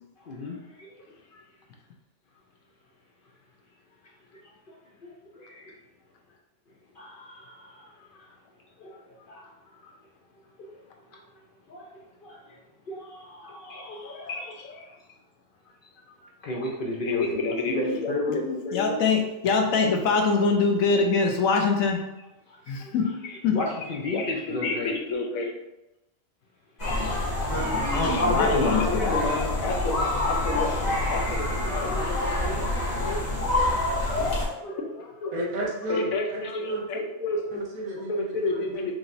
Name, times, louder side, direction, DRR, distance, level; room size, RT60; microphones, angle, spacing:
voice 1, 0.2-1.1 1.3-1.4 4.3-5.8 6.9-8.3 8.8-9.5 9.8-9.9 10.6-10.8 11.1-11.2 11.7-12.6 12.9-14.5 16.2-18.4 20.3-20.4 22.5-23.0 23.5-24.9 27.3-27.5 28.1-29.4 29.7-33.2 33.8-35.3 37.3-37.4, left 2 dB, 55° left, -2 dB, 0.7 m, -34 dB
voice 2, 13.7-14.9 17.0-22.0 22.7-23.6 24.1-25.5 27.9-29.9 30.3-30.7 30.9-31.2 31.7-32.6 33.0-33.8 34.8-35.3 35.9-37.4 38.1-39.0, left 4 dB, 85° left, 3 dB, 1.1 m, -27 dB
sound 1, 26.8-34.5, left 2 dB, 35° left, 1.2 m, -27 dB
voice 3, 27.5-28.2 35.3-37.0 37.5-39.0, right 1 dB, 80° right, -2 dB, 1.5 m, -33 dB
4.9 x 3.0 x 2.6 m, 0.92 s
omnidirectional pair, 1.4 m